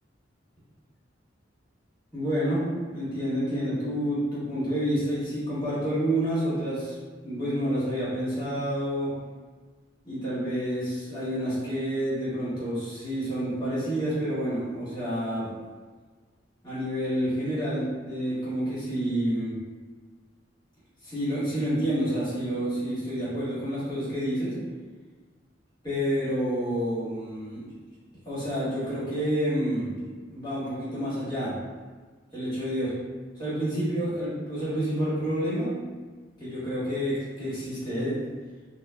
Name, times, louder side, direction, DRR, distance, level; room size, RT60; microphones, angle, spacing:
voice 1, 2.1-9.1 10.0-15.5 16.6-19.5 21.0-24.5 25.8-27.6 28.2-29.9 30.3-31.5 32.3-32.9 33.4-35.7 36.4-38.3, equal, 25° left, -10 dB, 1.4 m, -29 dB
3.6 x 2.1 x 2.2 m, 1.4 s
head